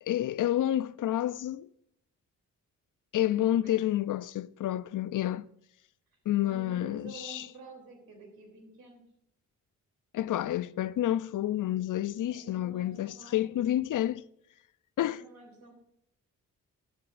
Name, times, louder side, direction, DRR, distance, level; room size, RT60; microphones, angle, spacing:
voice 1, 0.0-1.7 3.1-5.5 6.3-7.5 10.1-14.2 15.0-15.2, left 13 dB, 60° left, 0.5 m, -29 dB
voice 2, 3.5-3.8 6.4-9.0 12.3-13.5 15.0-15.7, right 2 dB, 70° right, 3.2 m, -49 dB
13.0 x 12.0 x 2.5 m
supercardioid pair, 40°, 36 cm